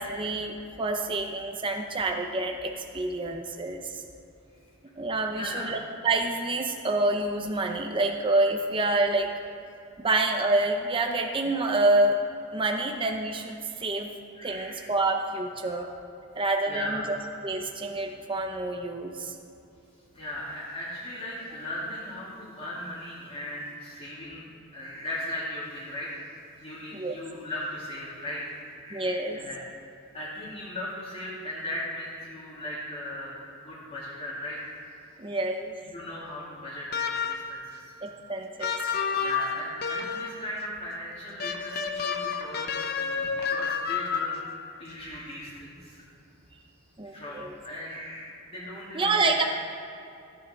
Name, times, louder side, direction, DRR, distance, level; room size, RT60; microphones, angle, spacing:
voice 1, 0.0-4.0 5.0-9.3 10.0-12.2 12.5-14.1 14.4-15.9 16.4-17.2 17.4-19.3 26.9-27.2 28.9-29.4 35.2-35.7 38.0-38.8 47.0-47.5 48.9-49.4, right 2 dB, 20° right, 3 dB, 0.6 m, -27 dB
voice 2, 5.3-5.7 14.3-14.8 16.7-17.2 20.1-24.5 24.7-26.1 26.5-29.6 30.1-34.8 35.8-38.0 39.2-44.4 44.8-46.0 47.0-49.4, left 1 dB, 30° left, -10 dB, 2.4 m, -38 dB
sound 1, 36.9-37.6 38.6-40.4 41.4-44.6, left 6 dB, 45° left, 0.6 m, -30 dB
15.5 x 9.3 x 4.4 m, 2.8 s
head